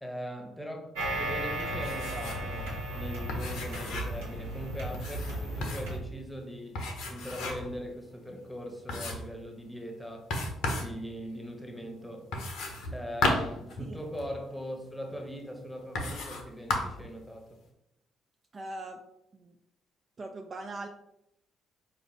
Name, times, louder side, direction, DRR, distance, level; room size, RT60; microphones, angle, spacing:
voice 1, 0.0-6.8 7.1-10.3 10.7-12.3 12.9-17.5, equal, ahead, 2 dB, 1.0 m, -40 dB
sound 1, 1.0-6.0, right 1 dB, 75° right, 0.9 m, -35 dB
sound 2, 1.7-2.5 2.8-2.9 3.3-4.2 4.9-6.0 6.7-7.8 8.2-8.3 8.9-9.4 10.3-10.9 12.3-14.3 15.1-15.2 15.9-16.4 16.7-17.1, left 2 dB, 60° left, 0.7 m, -34 dB
voice 2, 18.5-19.0 19.3-19.6 20.2-20.9, right 2 dB, 40° right, 3 dB, 0.4 m, -40 dB
4.4 x 2.5 x 3.1 m, 0.81 s
figure-of-eight pair, 45°, 0 cm